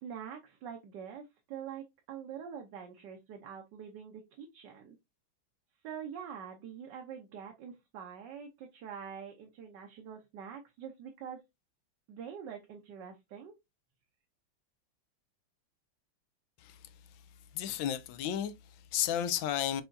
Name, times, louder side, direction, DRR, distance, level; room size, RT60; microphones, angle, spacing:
voice 1, 0.0-5.0 5.8-11.4 12.1-13.5, right 8 dB, 70° right, 1.4 m, -45 dB
voice 2, 16.6-17.3 17.5-19.8, left 10 dB, 85° left, 1.4 m, -34 dB
5.7 x 3.4 x 2.6 m
omnidirectional pair, 2.1 m